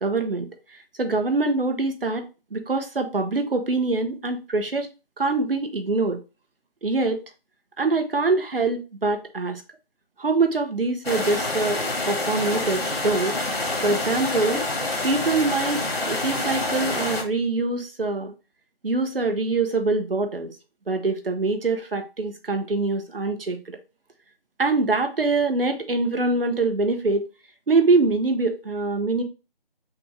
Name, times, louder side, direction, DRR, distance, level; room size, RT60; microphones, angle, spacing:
voice 1, 0.0-2.2 2.5-4.9 5.2-6.2 6.8-7.2 7.8-9.6 10.2-13.3 13.8-14.7 15.0-18.3 18.8-20.5 20.9-23.8 24.6-27.2 27.7-29.2, right 3 dB, 70° right, 1.0 m, -24 dB
sound 1, 11.0-17.2, left 2 dB, 80° left, 1.5 m, -27 dB
5.8 x 2.5 x 3.3 m
figure-of-eight pair, 160°, 30 cm